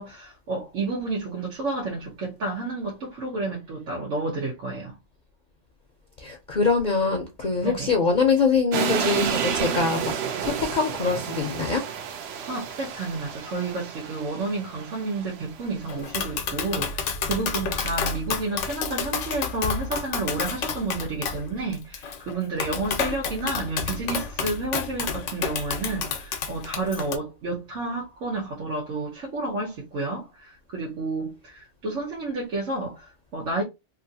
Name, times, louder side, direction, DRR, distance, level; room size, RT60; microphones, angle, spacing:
voice 1, 0.0-5.0 7.6-7.9 12.5-33.6, right 3 dB, 90° right, 1.3 m, -30 dB
voice 2, 6.2-11.8, left 4 dB, 50° left, 0.6 m, -24 dB
sound 1, 8.7-15.8, right 8 dB, 65° right, 0.8 m, -31 dB
Tap, 15.9-27.2, left 6 dB, 85° left, 1.0 m, -30 dB
3.0 x 2.5 x 2.7 m
omnidirectional pair, 1.2 m